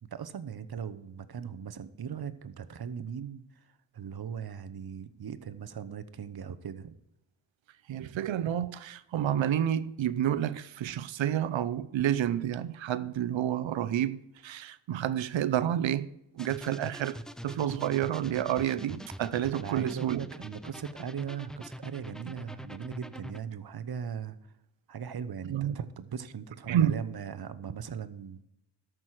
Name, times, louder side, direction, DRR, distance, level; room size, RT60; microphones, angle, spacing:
voice 1, 0.0-3.7 3.9-6.9 8.0-8.5 19.5-24.4 24.9-28.4, right 7 dB, 55° right, 0.9 m, -39 dB
voice 2, 7.9-17.2 17.4-20.2 22.3-22.4 25.5-25.8 26.7-27.0, right 10 dB, 90° right, 0.7 m, -29 dB
sound 1, 16.4-23.4, equal, ahead, 0.5 m, -44 dB
13.5 x 6.2 x 4.8 m
cardioid pair, 65°, 44 cm